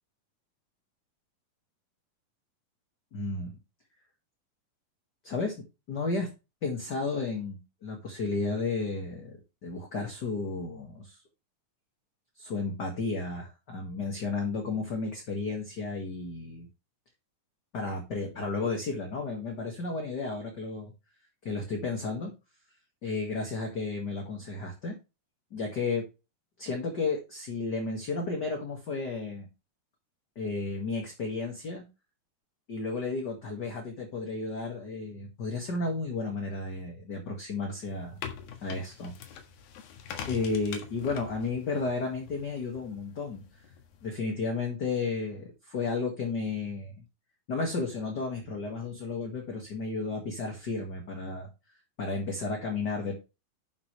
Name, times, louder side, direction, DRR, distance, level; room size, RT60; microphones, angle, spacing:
voice 1, 3.1-3.6 5.2-5.5 5.9-6.3 6.6-11.2 12.4-16.7 17.7-20.9 21.4-22.3 23.0-24.9 25.5-26.0 26.6-29.5 30.4-31.8 32.7-38.1 38.6-39.4 40.3-43.4 44.0-47.0 47.5-51.5 52.0-53.1, left 3 dB, 35° left, 1 dB, 1.9 m, -33 dB
sound 1, 37.9-44.1, left 7 dB, 75° left, 3.3 m, -44 dB
11.0 x 7.0 x 3.3 m, 0.27 s
omnidirectional pair, 4.2 m